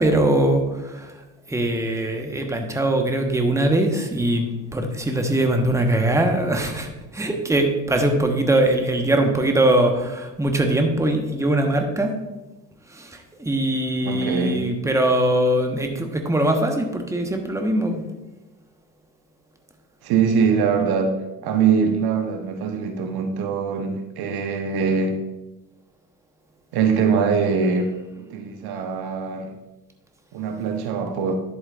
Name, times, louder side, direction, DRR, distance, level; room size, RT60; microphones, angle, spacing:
voice 1, 0.0-12.2 12.9-18.0, right 1 dB, 5° right, 4 dB, 1.2 m, -22 dB
voice 2, 14.1-14.6 20.0-21.1 21.4-25.2 26.7-27.9 28.2-29.5 30.3-31.3, right 6 dB, 55° right, 5 dB, 1.1 m, -22 dB
11.0 x 7.9 x 2.5 m, 1.0 s
hypercardioid pair, 55°, 46 cm